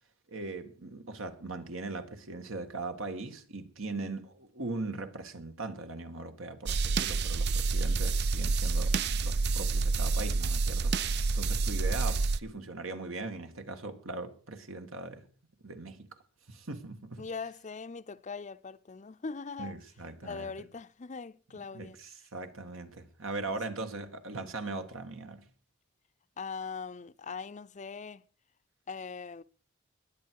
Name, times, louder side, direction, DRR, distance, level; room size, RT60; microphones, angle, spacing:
voice 1, 0.3-15.3 15.6-16.1 16.5-17.3 19.6-20.5 21.7-25.5, right 3 dB, 80° right, 1.9 m, -40 dB
sound 1, 6.7-12.4, right 4 dB, 55° right, 0.5 m, -28 dB
voice 2, 17.2-19.8 20.2-22.0 23.5-23.6 26.4-28.3 28.9-29.4, left 5 dB, 35° left, 0.6 m, -41 dB
21.0 x 8.4 x 4.7 m
head